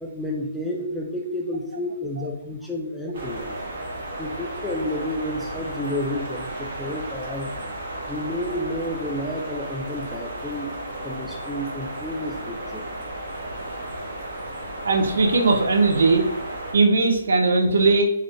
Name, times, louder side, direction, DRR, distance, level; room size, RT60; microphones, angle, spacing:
voice 1, 0.0-3.6 4.2-7.5 8.1-10.7 11.0-12.9, left 1 dB, ahead, -2 dB, 0.3 m, -30 dB
sound 1, 3.1-16.7, right 1 dB, 40° right, 1.0 m, -34 dB
voice 2, 14.8-16.2 16.7-18.0, right 3 dB, 70° right, 2 dB, 0.6 m, -19 dB
3.7 x 2.0 x 3.2 m, 0.90 s
hypercardioid pair, 165°, 0 cm